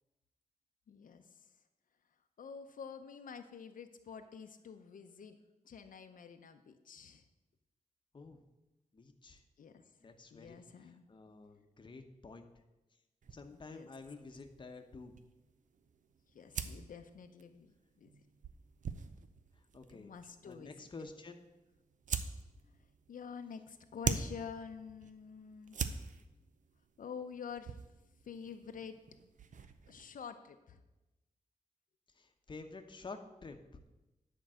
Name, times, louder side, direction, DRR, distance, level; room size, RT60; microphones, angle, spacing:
voice 1, 0.9-1.4 2.4-5.4 5.7-7.2 9.6-9.8 10.3-11.0 13.5-13.9 16.3-17.7 18.0-18.1 19.9-20.9 23.1-25.8 27.0-27.8 28.2-29.0 29.9-30.8, left 6 dB, 80° left, 7 dB, 0.7 m, -48 dB
voice 2, 8.9-9.4 10.0-12.5 13.3-15.2 19.7-20.1 20.4-21.4 32.1-33.6, left 3 dB, 35° left, 5 dB, 0.9 m, -50 dB
sound 1, 13.2-30.1, right 6 dB, 70° right, 0.6 m, -45 dB
10.0 x 4.6 x 7.4 m, 1.0 s
wide cardioid pair, 155°, 14 cm